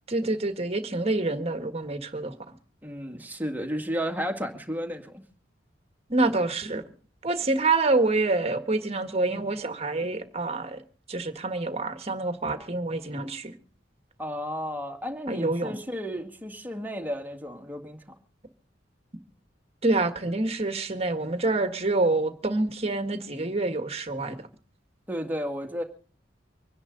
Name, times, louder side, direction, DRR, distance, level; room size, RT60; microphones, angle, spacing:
voice 1, 0.1-2.5 6.1-6.8 7.2-10.8 11.1-13.5 15.3-15.8 19.8-24.4, right 2 dB, 35° right, 1.6 m, -27 dB
voice 2, 2.8-5.2 14.2-18.0 25.1-25.8, equal, 10° right, 2.1 m, -33 dB
25.5 x 10.5 x 3.9 m
head